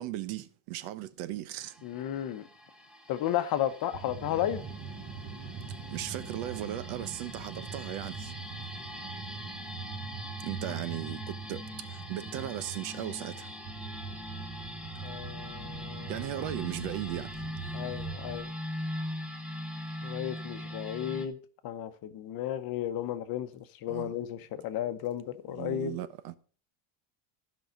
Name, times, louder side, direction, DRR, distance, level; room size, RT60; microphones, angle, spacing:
voice 1, 0.0-1.8 5.9-8.3 10.4-13.5 16.1-17.3 23.9-24.1 25.5-26.4, right 13 dB, 75° right, 1.0 m, -37 dB
sound 1, 1.6-21.3, left 1 dB, ahead, 0.9 m, -42 dB
voice 2, 1.8-2.4 3.1-4.6 15.0-16.1 17.7-18.5 20.0-21.4 21.6-26.0, left 11 dB, 45° left, 0.8 m, -33 dB
sound 2, 3.9-18.4, right 5 dB, 30° right, 1.4 m, -42 dB
13.5 x 5.6 x 5.1 m
cardioid pair, 160°, 50 cm